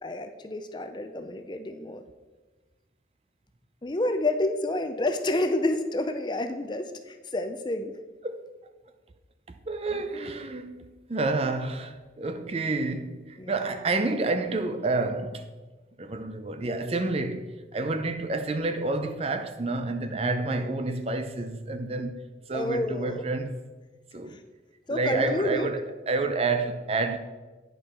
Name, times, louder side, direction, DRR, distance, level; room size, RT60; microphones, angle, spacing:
voice 1, 0.0-2.0 3.8-7.9 13.4-13.5 22.5-23.2 24.3-24.4 24.9-25.7, left 1 dB, 25° left, 0.4 m, -29 dB
voice 2, 9.7-15.5 16.0-23.6 24.1-24.4 24.9-27.2, right 3 dB, 35° right, 0.5 m, -29 dB
9.5 x 5.3 x 4.3 m
head